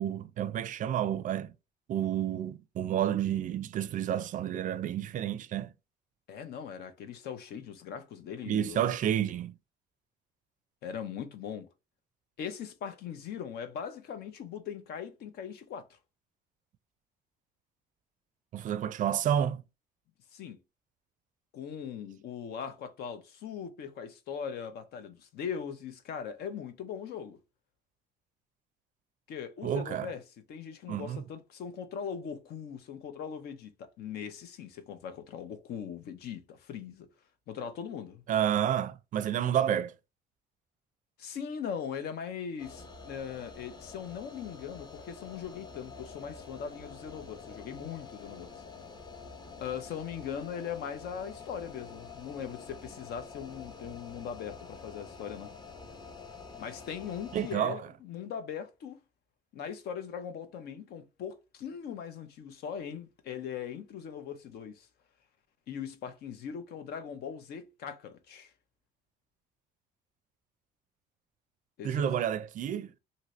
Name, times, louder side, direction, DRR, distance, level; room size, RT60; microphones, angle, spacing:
voice 1, 0.0-1.5 1.9-5.7 8.5-9.5 18.5-19.6 29.6-30.1 30.9-31.2 38.3-39.9 57.3-57.8 71.8-72.9, right 10 dB, 50° right, 0.4 m, -30 dB
voice 2, 6.3-8.8 10.8-11.7 12.4-16.0 20.3-20.6 21.5-27.4 29.3-30.2 30.5-37.1 37.5-38.2 41.2-48.6 49.6-55.5 56.6-59.0 59.5-64.9 65.7-68.5 71.8-72.0, left 7 dB, 70° left, 0.7 m, -40 dB
sound 1, 42.6-57.6, left 5 dB, 25° left, 0.7 m, -47 dB
2.8 x 2.7 x 3.0 m
cardioid pair, 110°, 17 cm